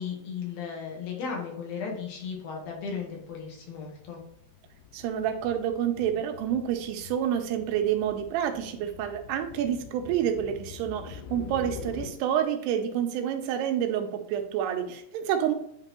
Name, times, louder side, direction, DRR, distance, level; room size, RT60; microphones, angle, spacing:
voice 1, 0.0-4.2, left 6 dB, 65° left, 0 dB, 2.8 m, -35 dB
sound 1, 2.9-3.2 3.5-12.1, left 8 dB, 80° left, 2.0 m, -45 dB
voice 2, 4.9-15.5, right 9 dB, 80° right, 6 dB, 2.7 m, -28 dB
9.7 x 3.8 x 3.0 m, 0.74 s
omnidirectional pair, 5.0 m